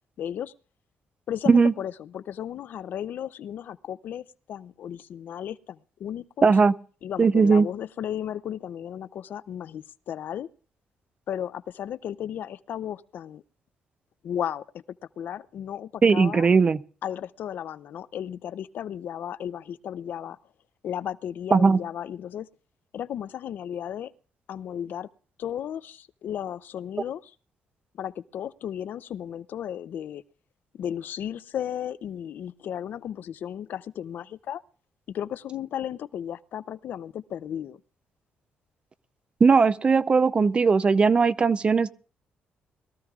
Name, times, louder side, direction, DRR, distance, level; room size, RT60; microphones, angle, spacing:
voice 1, 0.2-0.5 1.3-6.6 7.0-10.5 11.3-13.4 14.2-14.7 15.2-16.5 17.0-20.4 20.8-22.5 22.9-24.1 24.5-25.1 25.4-27.3 28.0-30.2 30.7-34.6 35.1-37.8, left 10 dB, 65° left, 0.6 m, -34 dB
voice 2, 6.4-6.7 7.2-7.7 16.0-16.8 21.5-21.8 39.4-41.9, right 5 dB, 30° right, 0.5 m, -18 dB
22.0 x 14.5 x 2.4 m
cardioid pair, 125°, 4 cm